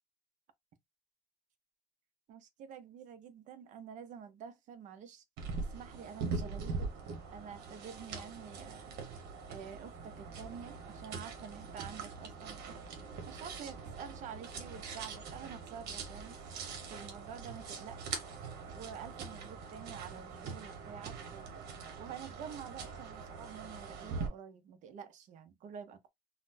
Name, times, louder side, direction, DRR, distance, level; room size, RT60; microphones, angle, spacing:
voice 1, 2.3-5.2 5.6-6.9 7.3-8.9 9.5-12.8 13.3-16.4 16.9-18.2 18.7-21.6 22.0-26.1, right 7 dB, 45° right, 0.6 m, -48 dB
sound 1, 5.4-24.3, right 4 dB, 70° right, 1.1 m, -43 dB
4.0 x 2.0 x 2.6 m
cardioid pair, 165°, 17 cm